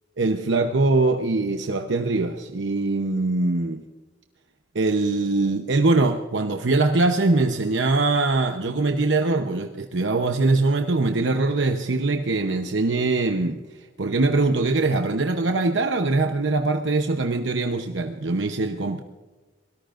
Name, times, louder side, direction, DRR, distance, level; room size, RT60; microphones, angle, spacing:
voice 1, 0.2-3.8 4.7-13.6 14.0-19.0, right 3 dB, 85° right, 5 dB, 0.8 m, -22 dB
23.5 x 18.0 x 2.5 m, 1.3 s
head